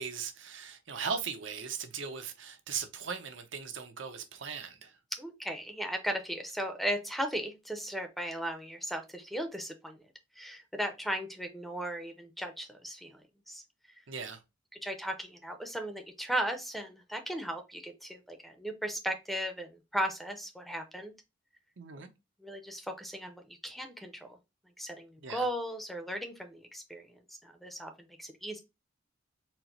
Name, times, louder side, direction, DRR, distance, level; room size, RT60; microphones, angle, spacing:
voice 1, 0.0-4.9 14.1-14.4 21.8-22.1 25.2-25.4, right 6 dB, 75° right, 0.8 m, -38 dB
voice 2, 5.2-10.0 10.4-13.6 14.8-21.1 22.4-24.4 24.8-28.6, right 1 dB, ahead, 0.6 m, -37 dB
4.4 x 2.1 x 3.9 m
head